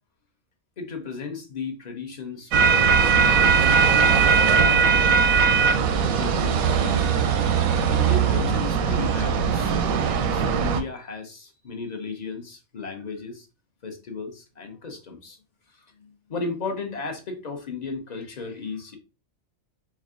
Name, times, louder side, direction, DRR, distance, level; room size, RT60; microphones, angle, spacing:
voice 1, 0.8-5.0 6.0-7.0 7.9-13.5 13.8-15.4 15.7-19.0, left 4 dB, 40° left, 3 dB, 0.7 m, -35 dB
sound 1, 2.5-10.8, right 6 dB, 85° right, 1.0 m, -20 dB
4.4 x 2.3 x 3.6 m, 0.30 s
omnidirectional pair, 1.4 m